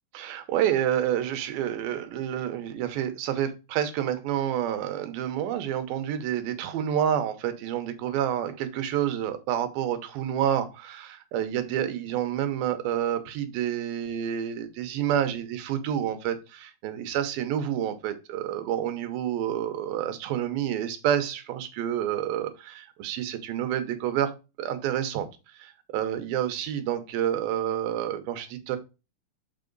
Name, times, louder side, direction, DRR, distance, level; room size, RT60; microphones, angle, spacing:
voice 1, 0.1-25.3 25.6-28.8, right 10 dB, 80° right, 9 dB, 2.7 m, -29 dB
6.9 x 4.8 x 3.9 m, 0.29 s
omnidirectional pair, 4.2 m